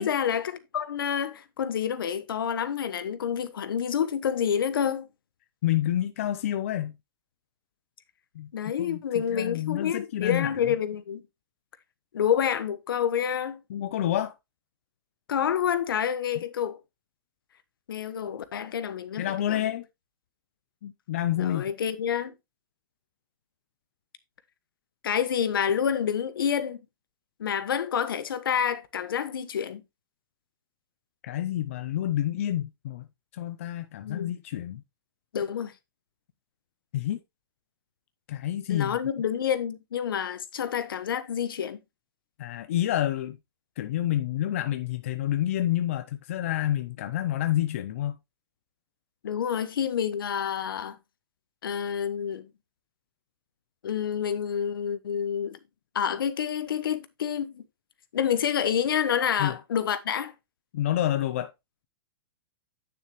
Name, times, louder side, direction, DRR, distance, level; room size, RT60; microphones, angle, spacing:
voice 1, 0.0-5.1 8.5-11.2 12.1-13.6 15.3-16.8 17.9-19.7 21.4-22.3 25.0-26.8 27.4-29.8 34.0-34.3 35.3-35.7 38.7-41.8 49.2-51.0 51.6-52.5 53.8-55.6 55.9-57.6 58.1-60.3, left 8 dB, 70° left, 1.3 m, -28 dB
voice 2, 5.6-6.9 8.4-8.5 8.8-9.0 9.3-10.5 13.7-14.3 19.2-19.8 20.8-21.6 31.2-33.1 33.3-34.8 36.9-37.2 38.3-39.0 42.4-43.4 43.8-48.2 59.4-59.5 60.7-61.5, left 12 dB, 35° left, 0.5 m, -28 dB
9.3 x 6.8 x 3.0 m
hypercardioid pair, 180°, 12 cm